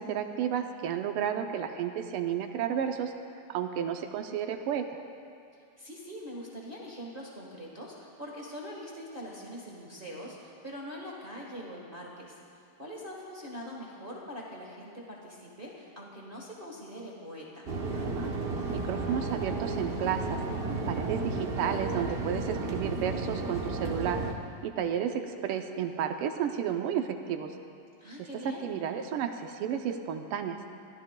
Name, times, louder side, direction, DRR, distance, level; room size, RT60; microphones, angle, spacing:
voice 1, 0.0-3.1 3.5-5.0 18.7-20.4 20.9-24.2 24.6-27.5 28.2-30.6, right 8 dB, 90° right, 6 dB, 1.6 m, -32 dB
voice 2, 5.5-12.4 12.8-17.7 28.0-28.9, equal, 30° right, -4 dB, 1.4 m, -43 dB
sound 1, 17.7-24.3, right 3 dB, 45° right, 0.7 m, -33 dB
24.0 x 14.5 x 2.2 m, 2.4 s
omnidirectional pair, 2.4 m